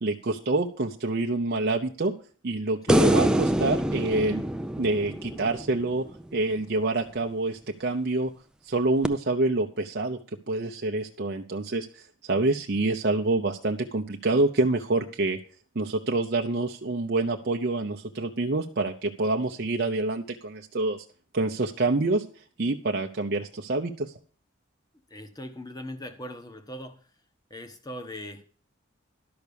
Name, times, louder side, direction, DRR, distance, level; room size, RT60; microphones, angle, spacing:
voice 1, 0.0-2.1 2.4-4.4 4.8-6.0 6.3-8.3 8.6-10.2 10.5-15.4 15.7-21.0 21.3-22.2 22.6-24.1, right 2 dB, 50° right, 3 dB, 0.7 m, -27 dB
sound 1, 2.9-6.2 9.0-9.1, right 1 dB, 5° right, 0.4 m, -25 dB
voice 2, 25.1-27.1 27.5-28.4, left 1 dB, 20° left, 8 dB, 1.1 m, -40 dB
12.0 x 6.0 x 6.8 m, 0.41 s
head